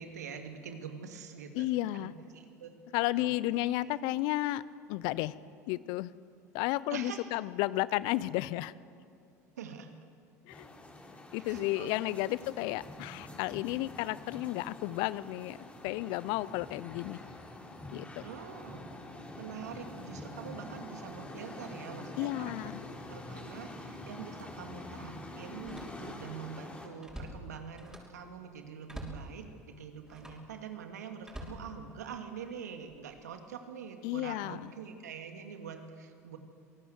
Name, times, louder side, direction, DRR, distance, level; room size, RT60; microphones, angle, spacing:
voice 1, 0.0-2.8 3.1-3.3 3.6-3.9 6.9-7.4 9.6-9.9 11.4-12.5 18.2-18.9 19.4-36.4, right 7 dB, 80° right, 6 dB, 2.3 m, -45 dB
voice 2, 1.5-2.1 2.9-4.6 4.9-5.3 5.7-6.1 6.5-8.7 10.5-10.7 11.3-15.6 15.8-17.2 17.9-18.2 22.2-22.8 34.0-34.7, left 17 dB, 60° left, 19 dB, 0.8 m, -32 dB
sound 1, 10.5-26.9, left 1 dB, 15° left, 4.5 m, -46 dB
Slam, 24.1-24.2 25.5-26.3 26.7-28.2 28.9-29.3 30.0-30.5 31.2-32.3 32.9-33.2, equal, 5° right, 5.9 m, -47 dB
26.5 x 18.5 x 8.1 m, 2.3 s
hypercardioid pair, 75°, 9 cm